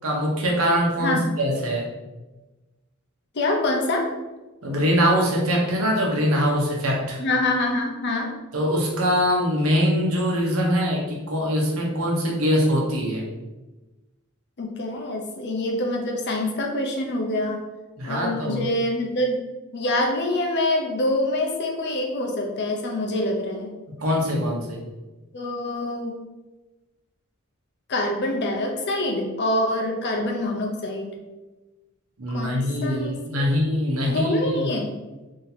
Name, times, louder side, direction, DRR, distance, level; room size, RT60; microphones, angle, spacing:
voice 1, 0.0-1.9 4.6-7.2 8.5-13.3 18.0-18.7 24.0-24.8 32.2-34.7, equal, 85° right, -1 dB, 1.0 m, -23 dB
voice 2, 3.3-4.1 7.2-8.3 14.6-17.6 18.0-19.4 19.7-23.7 25.3-26.2 27.9-31.2 32.3-33.7 34.1-34.9, left 1 dB, 55° left, 2 dB, 0.7 m, -25 dB
3.0 x 2.8 x 4.1 m, 1.1 s
head